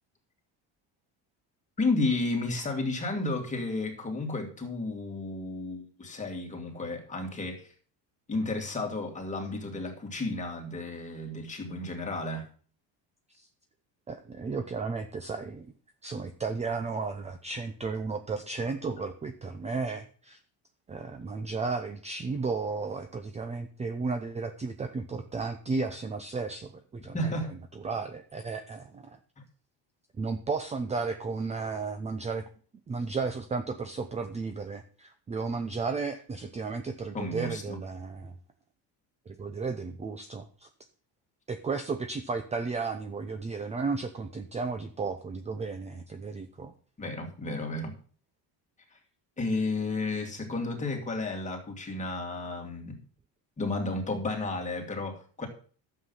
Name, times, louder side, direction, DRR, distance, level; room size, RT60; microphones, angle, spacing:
voice 1, 1.8-7.7 8.3-12.5 27.1-27.5 37.1-37.8 47.0-48.0 48.9-49.0 49.4-53.0 53.6-55.5, left 2 dB, 20° left, 2.5 m, -32 dB
voice 2, 14.1-15.7 16.0-20.4 20.9-29.2 30.2-32.4 32.9-38.3 39.3-40.7 41.5-46.7, right 4 dB, 15° right, 0.6 m, -34 dB
12.0 x 7.7 x 5.6 m
cardioid pair, 155°, 40 cm